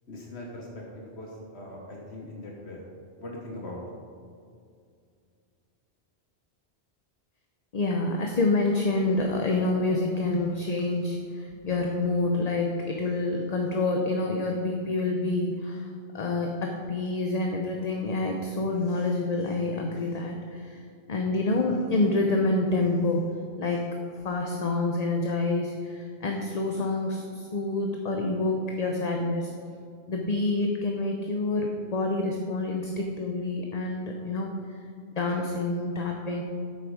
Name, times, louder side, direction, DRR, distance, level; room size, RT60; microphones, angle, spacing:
voice 1, 0.1-2.8 3.2-3.8, left 1 dB, 75° left, -1 dB, 1.4 m, -40 dB
voice 2, 7.7-24.0 24.2-29.5 30.1-34.5 35.2-36.4, left 2 dB, 40° left, 2 dB, 0.8 m, -27 dB
9.0 x 7.7 x 4.9 m, 2.3 s
omnidirectional pair, 1.1 m